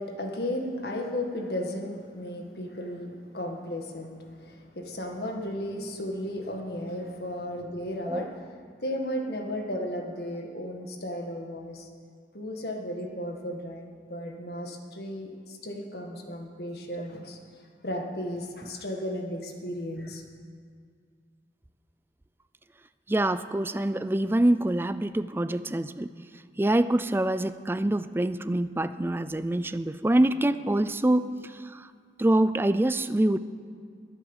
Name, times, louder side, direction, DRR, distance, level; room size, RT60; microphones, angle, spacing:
voice 1, 0.0-8.3 8.8-11.9 12.3-17.4 17.8-20.2, left 1 dB, 60° left, 2 dB, 1.8 m, -34 dB
voice 2, 23.1-26.1 26.6-31.9 32.2-33.4, right 1 dB, 15° right, 13 dB, 0.4 m, -25 dB
21.5 x 8.0 x 7.1 m, 2.2 s
head